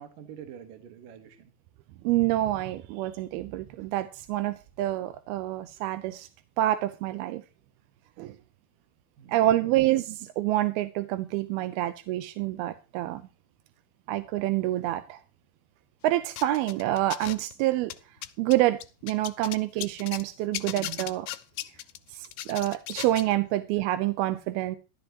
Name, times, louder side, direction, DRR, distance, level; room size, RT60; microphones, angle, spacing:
voice 1, 0.0-1.5 9.2-9.8, right 9 dB, 65° right, 2.9 m, -46 dB
voice 2, 2.0-6.3 6.6-7.4 8.2-8.4 9.3-13.2 14.1-15.2 16.0-17.9 18.4-21.3 22.1-24.8, right 15 dB, 85° right, 2.7 m, -27 dB
sound 1, 16.4-17.5 17.8-20.2 20.5-23.3, left 14 dB, 85° left, 2.7 m, -37 dB
13.5 x 13.5 x 3.0 m
omnidirectional pair, 4.4 m